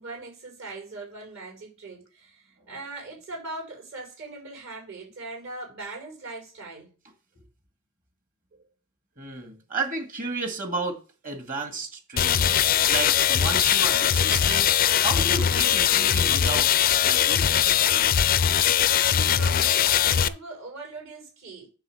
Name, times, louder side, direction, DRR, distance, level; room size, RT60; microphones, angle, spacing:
voice 1, 0.0-6.9 8.5-8.6 18.9-21.7, right 3 dB, 60° right, 6.0 m, -40 dB
voice 2, 9.2-12.6 12.9-17.6, right 3 dB, 40° right, 2.1 m, -33 dB
sound 1, 12.2-20.3, left 9 dB, 40° left, 0.4 m, -21 dB
10.0 x 3.5 x 7.2 m
head